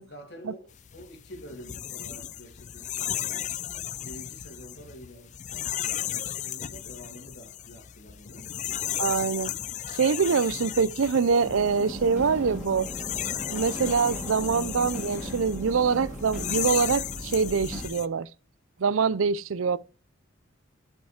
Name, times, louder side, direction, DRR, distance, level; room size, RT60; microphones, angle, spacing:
voice 1, 0.0-3.7 4.0-8.5, equal, 55° left, 2.4 m, -47 dB
sound 1, 0.8-18.1, left 11 dB, 35° left, 0.3 m, -35 dB
voice 2, 9.0-9.5 9.9-12.9 13.5-18.3 18.8-19.8, right 5 dB, 80° right, 0.5 m, -24 dB
sound 2, 11.4-17.9, equal, 5° right, 2.4 m, -37 dB
8.1 x 5.6 x 4.3 m
head